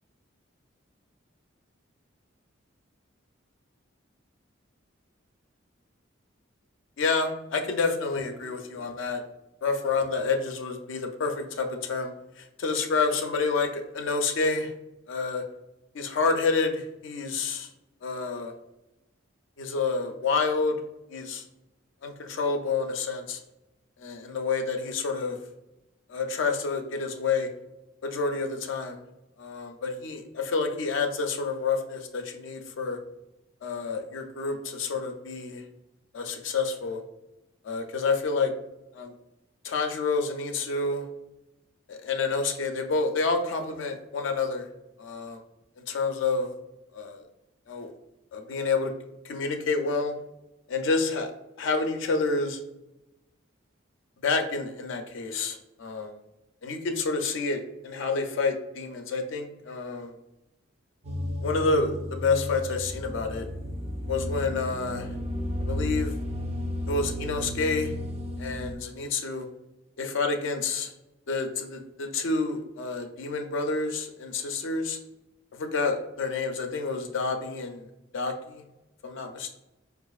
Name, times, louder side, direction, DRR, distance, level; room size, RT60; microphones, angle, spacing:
voice 1, 7.0-9.2 9.6-14.7 15.1-15.4 15.9-17.7 18.0-18.5 19.6-20.8 21.1-21.4 22.0-23.4 24.0-25.4 26.1-27.5 28.0-29.0 29.4-33.0 33.6-35.6 36.1-37.0 37.6-38.5 38.9-39.1 39.6-41.1 41.9-44.7 45.0-45.4 45.9-46.5 46.9-47.2 47.7-47.9 48.3-48.9 49.2-50.1 50.7-51.3 51.6-52.6 54.2-56.1 56.6-60.1 61.4-63.5 64.1-65.1 65.6-66.2 66.9-67.9 68.4-69.5 70.0-70.9 71.3-75.0 75.5-77.9 78.1-78.6 79.0-79.5, left 4 dB, 70° left, 5 dB, 0.4 m, -28 dB
sound 1, 61.0-68.8, left 1 dB, 30° right, 0.4 m, -33 dB
4.7 x 2.4 x 2.3 m, 0.94 s
head